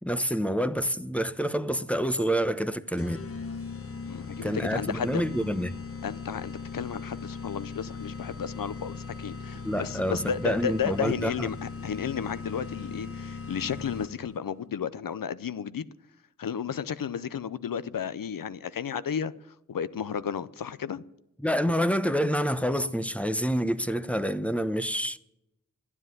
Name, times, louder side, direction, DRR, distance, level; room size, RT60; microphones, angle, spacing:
voice 1, 0.0-3.2 4.4-5.8 9.6-11.5 21.4-25.2, equal, 5° left, 0.9 m, -27 dB
sound 1, 3.0-14.4, left 4 dB, 45° left, 1.1 m, -39 dB
voice 2, 4.1-5.2 6.0-15.9 16.4-19.3 19.7-21.0, left 7 dB, 80° left, 0.7 m, -33 dB
12.5 x 9.8 x 9.4 m
cardioid pair, 40°, 33 cm